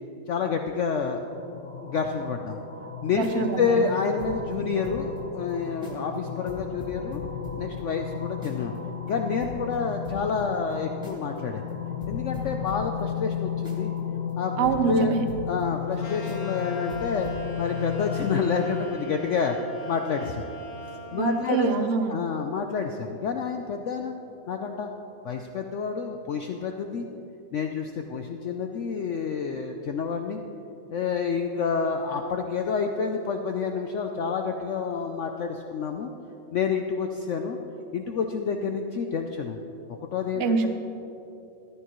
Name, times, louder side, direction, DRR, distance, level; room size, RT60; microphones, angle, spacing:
voice 1, 0.3-1.2 1.8-2.6 3.0-7.2 7.6-8.7 9.1-11.6 12.1-13.9 14.4-14.5 14.9-15.2 15.5-17.3 17.6-19.6 19.9-20.5 21.1-21.7 22.1-24.1 24.5-24.9 25.2-27.1 27.5-30.4 30.9-36.1 36.5-37.6 37.9-39.6 39.9-40.7, left 5 dB, 90° left, 4 dB, 0.6 m, -28 dB
sound 1, 1.2-18.9, left 8 dB, 65° left, 1.4 m, -34 dB
sound 2, 3.1-5.2 5.5-5.6 5.8-6.2 6.5-8.8 9.1-9.2 9.4-11.4 11.7-11.8 12.0-16.0 16.2-16.6 16.9-17.4, equal, 5° right, 1.7 m, -44 dB
voice 2, 3.1-3.9 14.6-15.3 21.2-22.1 40.4-40.7, right 5 dB, 55° right, 7 dB, 0.7 m, -25 dB
sound 3, 16.0-21.8, right 1 dB, 45° left, 1.4 m, -41 dB
14.5 x 12.0 x 3.0 m, 2.9 s
omnidirectional pair, 1.9 m